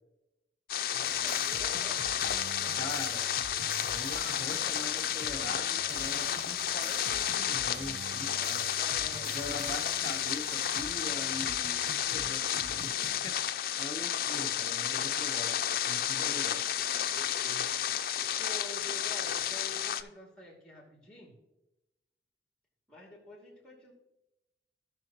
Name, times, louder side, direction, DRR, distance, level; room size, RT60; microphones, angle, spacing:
sound 1, 0.7-20.0, left 10 dB, 55° left, 0.5 m, -32 dB
voice 1, 0.9-2.1 2.5-3.0 8.8-9.4 14.9-15.2 16.2-16.4 17.1-17.7 18.4-21.4 22.9-23.9, left 1 dB, 5° left, -1 dB, 2.5 m, -48 dB
sound 2, 1.0-13.3, right 3 dB, 85° right, 0.9 m, -46 dB
voice 2, 2.7-3.3 3.9-8.7 9.3-12.9 13.2-15.5 15.8-16.6, left 1 dB, 25° left, 5 dB, 1.0 m, -42 dB
16.0 x 6.0 x 3.0 m, 0.96 s
head